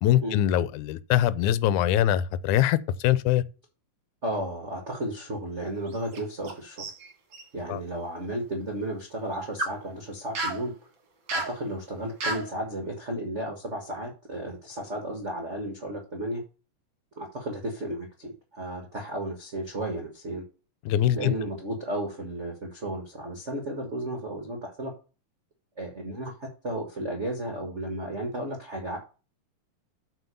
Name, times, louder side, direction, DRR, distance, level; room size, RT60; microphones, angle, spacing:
voice 1, 0.0-2.8 3.0-3.4 7.7-7.8 20.9-21.3, left 12 dB, 85° left, 2.1 m, -23 dB
voice 2, 4.2-6.8 7.5-10.7 11.3-16.4 17.2-20.4 21.1-24.9 25.8-29.0, right 1 dB, 35° right, 1.3 m, -33 dB
sound 1, 5.9-6.5 6.8-7.4 9.3-9.8 10.4-10.6 11.3-11.6 12.2-12.5, right 2 dB, 50° right, 1.9 m, -31 dB
8.3 x 4.4 x 6.8 m
omnidirectional pair, 3.4 m